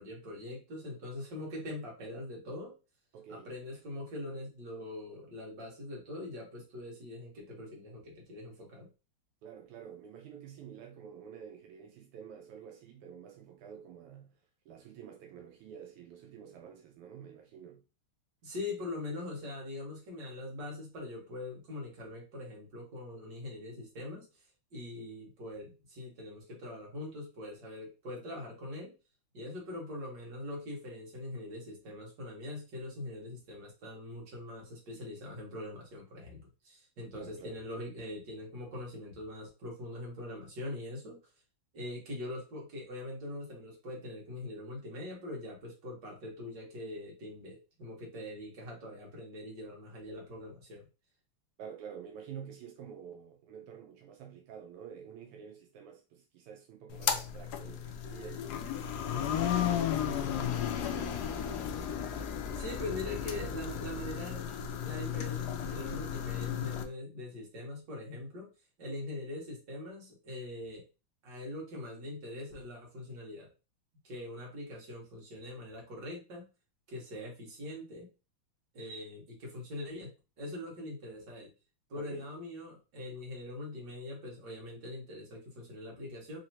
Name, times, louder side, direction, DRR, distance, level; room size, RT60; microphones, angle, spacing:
voice 1, 0.0-2.7 3.3-8.9 18.4-24.4 24.7-28.9 29.3-41.2 41.7-50.9 62.6-64.5 64.8-68.5 68.8-70.8 71.2-73.5 74.0-76.5 76.9-78.1 78.7-80.1 80.4-81.5 81.9-86.4, left 1 dB, 55° right, 2.1 m, -42 dB
voice 2, 3.1-3.5 9.4-14.3 14.7-17.8 37.1-37.6 51.6-58.7 59.1-59.8 60.2-61.9 82.0-82.3, right 8 dB, 85° right, 1.6 m, -49 dB
sound 1, 56.9-66.8, left 9 dB, 85° left, 0.8 m, -34 dB
4.2 x 2.9 x 2.8 m
omnidirectional pair, 2.4 m